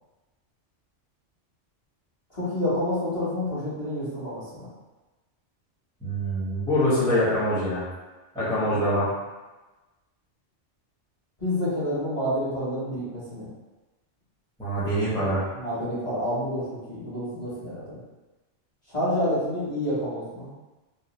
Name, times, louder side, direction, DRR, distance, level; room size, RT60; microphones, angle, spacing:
voice 1, 2.3-4.7 8.6-8.7 11.4-13.5 15.5-18.0 18.9-20.5, left 1 dB, 30° left, -12 dB, 1.1 m, -28 dB
voice 2, 6.0-7.8 8.3-9.1 14.6-15.4, equal, 5° left, -12 dB, 0.7 m, -24 dB
2.7 x 2.0 x 3.0 m, 1.1 s
omnidirectional pair, 1.2 m